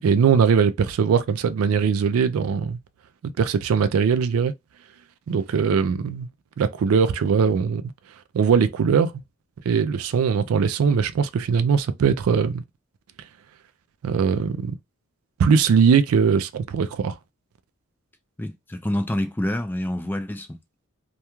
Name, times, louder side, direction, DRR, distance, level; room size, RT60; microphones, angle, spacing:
voice 1, 0.0-2.8 3.4-4.5 5.3-6.3 6.6-7.8 8.3-9.1 9.7-12.6 14.0-14.8 15.4-17.1, right 6 dB, 80° right, 0.3 m, -20 dB
voice 2, 18.4-20.6, left 1 dB, 10° left, 0.3 m, -27 dB
2.3 x 2.2 x 2.9 m
head